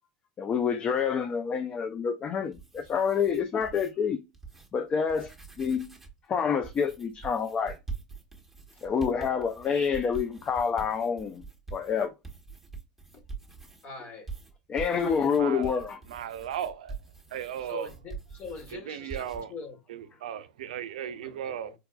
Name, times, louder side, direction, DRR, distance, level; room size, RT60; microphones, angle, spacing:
voice 1, 0.4-4.2 4.7-5.3 5.6-5.9 6.3-7.8 8.8-11.4 11.7-12.1 14.7-16.0, left 6 dB, 30° left, 0.4 m, -27 dB
sound 1, 2.4-3.9 4.3-4.7 5.0-6.2 6.6-13.8 14.3-18.8 19.1-19.4, right 5 dB, ahead, 1.2 m, -44 dB
voice 2, 13.8-14.3 14.9-15.3 17.6-19.8 21.0-21.7, left 4 dB, 45° left, 1.6 m, -44 dB
voice 3, 15.4-15.8 16.1-17.0 17.3-17.9 18.7-19.5 19.9-21.7, right 9 dB, 85° right, 0.5 m, -36 dB
4.6 x 2.3 x 2.2 m
supercardioid pair, 115°, 4 cm